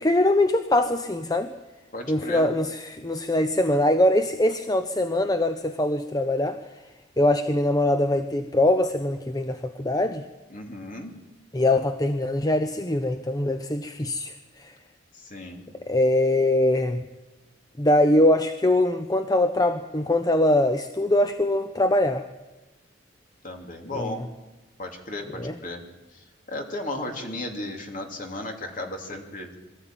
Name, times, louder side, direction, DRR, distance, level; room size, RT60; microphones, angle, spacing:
voice 1, 0.0-1.5 2.1-6.6 7.2-10.2 11.5-14.7 15.8-17.0 17.8-22.2 23.9-24.2 25.4-25.6, left 1 dB, 20° left, 9 dB, 0.7 m, -22 dB
voice 2, 1.9-2.5 10.5-11.1 15.1-15.6 23.4-24.2 24.8-25.8 26.5-29.5, left 1 dB, 45° left, 3 dB, 3.0 m, -35 dB
22.5 x 14.0 x 9.1 m, 1.1 s
head